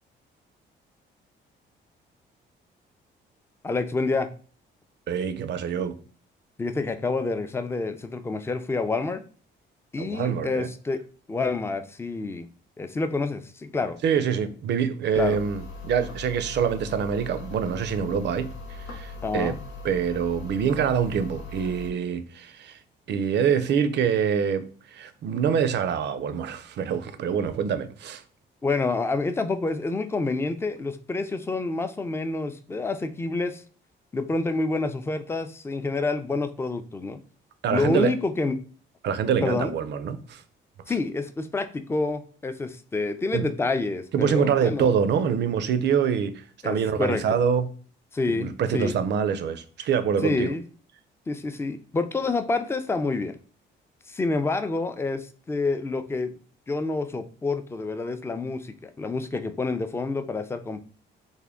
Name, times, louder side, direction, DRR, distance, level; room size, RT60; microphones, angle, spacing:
voice 1, 3.6-4.3 6.6-9.2 9.9-11.0 11.3-12.5 12.8-14.0 15.2-15.4 19.2-19.6 28.6-33.6 34.1-37.2 37.7-38.5 39.4-39.7 40.9-44.9 46.6-47.2 48.1-48.9 50.2-50.6 51.3-53.3 54.1-56.3 56.7-60.8, left 3 dB, 15° left, 0.4 m, -28 dB
voice 2, 5.1-6.0 10.0-10.7 14.0-19.6 19.8-22.8 23.1-28.2 37.6-38.1 39.0-40.4 43.3-43.4 44.1-47.7 48.3-50.5, right 7 dB, 60° right, 0.5 m, -25 dB
sound 1, 15.1-21.9, left 3 dB, 85° left, 0.8 m, -39 dB
3.5 x 2.1 x 3.5 m
cardioid pair, 90°, 20 cm